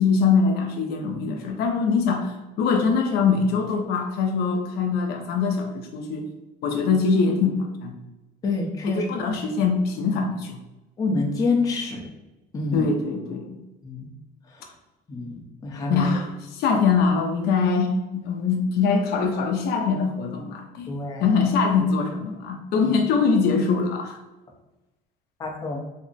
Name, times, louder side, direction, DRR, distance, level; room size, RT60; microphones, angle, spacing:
voice 1, 0.0-6.3 6.6-7.9 8.8-10.6 12.7-13.6 15.9-16.3 16.5-20.9 21.2-24.2, left 5 dB, 60° left, 3 dB, 0.5 m, -23 dB
voice 2, 8.4-9.1 11.0-12.0 12.5-12.9 13.8-14.1 14.5-14.7 15.1-16.2 20.9-21.3 22.8-22.9 25.4-25.8, left 3 dB, 20° left, -1 dB, 0.6 m, -27 dB
3.5 x 2.0 x 3.9 m, 1.0 s
cardioid pair, 160°, 18 cm